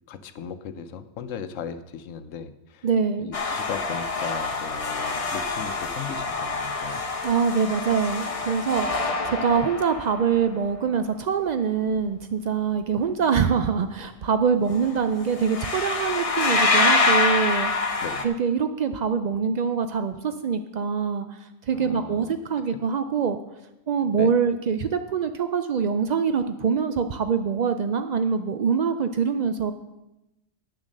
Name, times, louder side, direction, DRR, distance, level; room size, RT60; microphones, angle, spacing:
voice 1, 0.1-2.9 3.2-7.0 18.0-18.3 21.7-22.4 24.2-24.3, left 7 dB, 75° left, 11 dB, 1.1 m, -37 dB
voice 2, 2.8-3.3 7.2-17.7 18.2-21.3 21.7-23.4 23.9-29.7, right 6 dB, 85° right, 9 dB, 0.3 m, -24 dB
sound 1, 3.3-10.4 14.7-14.9 15.2-18.2, left 3 dB, 30° left, 0.8 m, -26 dB
9.0 x 7.2 x 6.5 m, 0.95 s
omnidirectional pair, 1.3 m